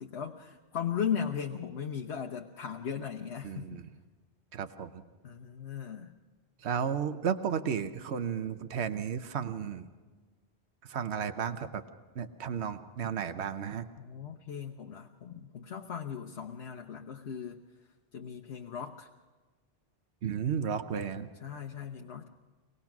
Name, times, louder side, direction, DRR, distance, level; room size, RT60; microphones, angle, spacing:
voice 1, 0.0-3.8 5.2-6.1 14.0-17.6 18.1-19.1 21.4-22.3, left 8 dB, 90° left, 2 dB, 1.2 m, -37 dB
voice 2, 3.4-3.9 4.5-4.9 6.6-9.9 10.8-11.8 12.1-13.9 20.2-21.3, right 7 dB, 85° right, 10 dB, 1.1 m, -33 dB
24.0 x 19.0 x 5.9 m, 1.3 s
omnidirectional pair, 1.1 m